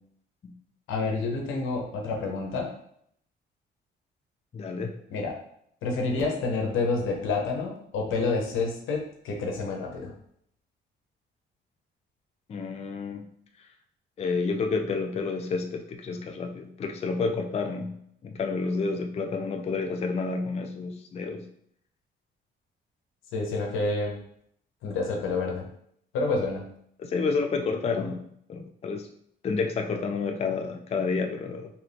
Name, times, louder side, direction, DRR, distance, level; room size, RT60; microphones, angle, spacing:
voice 1, 0.9-2.7 5.1-5.3 5.8-10.1 23.3-24.2 24.8-25.7 26.1-26.6, left 3 dB, 85° left, 1 dB, 0.8 m, -28 dB
voice 2, 4.5-4.9 12.5-13.2 14.2-17.9 18.2-21.5 27.0-28.2 28.5-29.1 29.4-31.7, left 4 dB, 30° left, 4 dB, 0.4 m, -29 dB
2.8 x 2.5 x 3.3 m, 0.69 s
cardioid pair, 90°, 20 cm